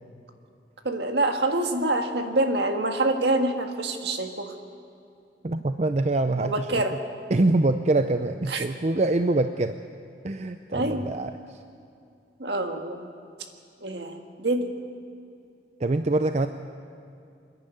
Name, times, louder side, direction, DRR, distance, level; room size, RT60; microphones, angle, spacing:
voice 1, 0.8-4.5 6.4-7.0 8.5-8.6 10.7-11.1 12.4-13.1 13.8-14.7, right 2 dB, 70° right, 5 dB, 1.8 m, -26 dB
voice 2, 5.4-6.8 7.3-9.8 10.2-11.3 15.8-16.5, right 2 dB, 40° right, 8 dB, 0.5 m, -24 dB
27.5 x 10.5 x 9.3 m, 2.5 s
head